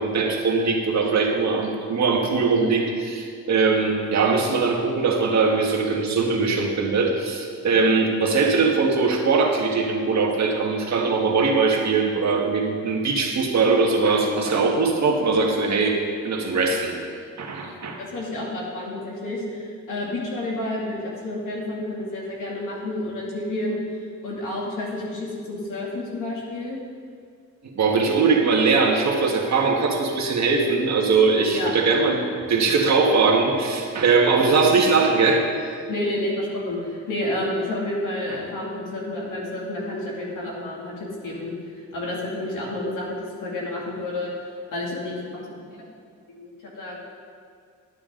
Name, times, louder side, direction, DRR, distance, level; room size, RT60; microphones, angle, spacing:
voice 1, 0.0-17.0 17.4-18.0 27.7-35.5, right 4 dB, 60° right, 0 dB, 1.6 m, -21 dB
voice 2, 17.8-23.8 24.2-26.8 31.5-31.9 35.9-44.3 44.7-45.8 46.3-47.0, left 1 dB, 85° left, -4 dB, 2.7 m, -30 dB
12.0 x 9.6 x 3.8 m, 2.2 s
cardioid pair, 120°, 31 cm